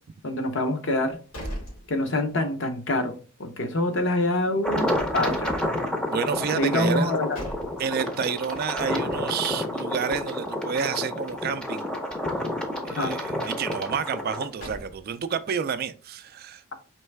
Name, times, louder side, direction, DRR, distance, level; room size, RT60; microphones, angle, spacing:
voice 1, 0.2-1.2 1.9-4.9 5.1-5.6 6.6-7.4 13.0-13.1, left 1 dB, 55° left, 0.7 m, -25 dB
sound 1, 1.0-2.6 3.0-3.1 6.9-8.1 14.2-15.4, equal, 75° left, 2.3 m, -40 dB
sound 2, 4.6-14.5, left 1 dB, 5° left, 0.6 m, -30 dB
voice 2, 6.1-7.1 7.8-11.9 12.8-16.8, right 6 dB, 45° right, 0.3 m, -29 dB
4.5 x 3.2 x 3.3 m
head